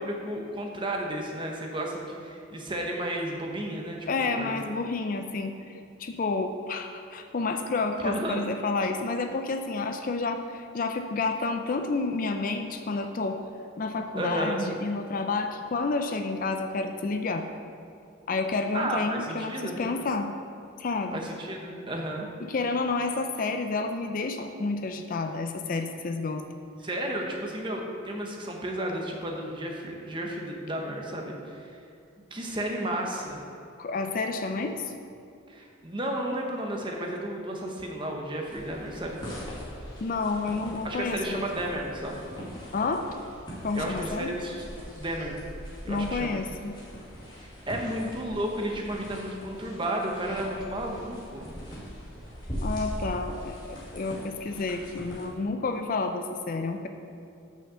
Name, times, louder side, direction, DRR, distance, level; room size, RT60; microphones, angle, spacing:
voice 1, 0.0-4.6 8.0-8.4 14.2-14.7 18.7-19.8 21.1-22.3 26.8-31.8 32.3-33.4 35.5-39.2 40.8-42.2 43.7-44.6 45.0-45.4 45.8-46.4 47.4-51.5, right 1 dB, 25° right, 1 dB, 0.9 m, -33 dB
voice 2, 4.1-5.5 6.0-13.4 13.8-17.5 18.3-20.3 20.8-21.2 22.4-26.4 33.8-34.9 40.0-41.4 42.7-43.1 43.6-44.3 45.9-46.8 52.6-56.9, left 3 dB, 40° left, 6 dB, 0.4 m, -30 dB
sound 1, 38.4-55.3, equal, 20° left, 1.8 m, -41 dB
6.2 x 5.5 x 6.7 m, 2.5 s
head